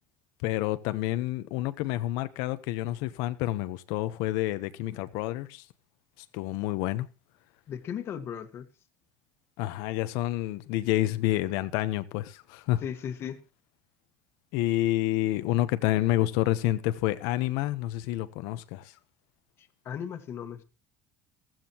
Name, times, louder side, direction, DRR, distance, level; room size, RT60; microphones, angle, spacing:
voice 1, 0.4-5.6 6.3-7.1 9.6-12.8 14.5-18.9, left 15 dB, 75° left, 0.9 m, -28 dB
voice 2, 7.7-8.7 12.8-13.4 19.6-20.6, left 8 dB, 40° left, 1.6 m, -37 dB
15.5 x 14.5 x 3.0 m
cardioid pair, 140°, 7 cm